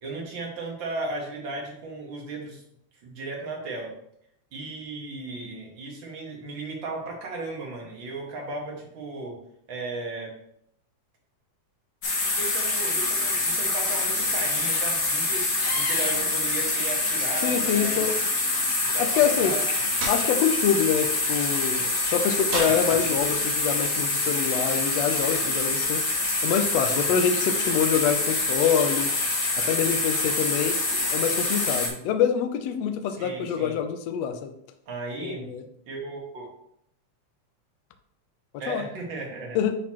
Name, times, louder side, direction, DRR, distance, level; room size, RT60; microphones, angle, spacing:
voice 1, 0.0-2.6 3.0-3.9 4.5-9.4 9.7-10.3 12.2-18.1 18.8-19.6 22.5-22.7 26.9-27.1 33.1-33.8 34.9-35.5 35.9-36.5 38.6-39.6, right 3 dB, 50° right, -1 dB, 1.8 m, -36 dB
sound 1, 12.0-31.9, left 2 dB, 55° left, 2.6 m, -26 dB
voice 2, 17.4-18.1 19.0-19.5 20.1-21.8 22.1-26.0 26.4-29.1 29.5-30.7 31.1-34.5 35.2-35.6 38.7-38.8 39.5-39.8, left 8 dB, 75° left, 7 dB, 1.7 m, -25 dB
sound 2, 20.0-20.2 22.5-23.5, right 2 dB, 75° right, 2.9 m, -32 dB
10.0 x 4.0 x 3.0 m, 0.72 s
omnidirectional pair, 3.4 m